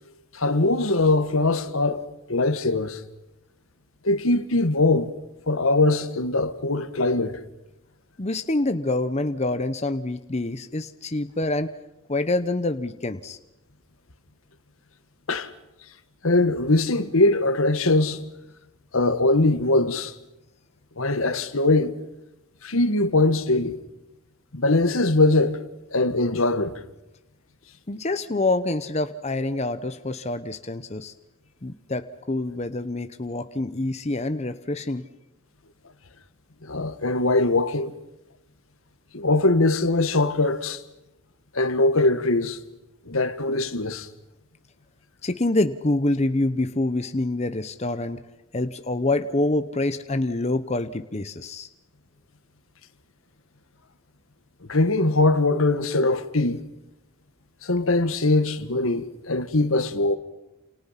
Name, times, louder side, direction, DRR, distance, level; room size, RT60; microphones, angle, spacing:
voice 1, 0.3-3.0 4.0-5.1 5.5-7.4 15.3-15.5 16.2-18.2 18.9-20.1 21.0-21.9 22.6-23.8 24.5-25.6 25.9-26.8 36.6-37.9 39.1-40.8 41.5-42.6 43.1-44.1 54.7-56.6 57.6-60.2, left 2 dB, 80° left, 1.7 m, -21 dB
voice 2, 8.2-11.7 12.1-13.4 27.9-31.1 31.6-35.1 45.2-48.2 48.5-51.7, left 2 dB, 30° left, 0.9 m, -26 dB
29.0 x 28.5 x 5.8 m
head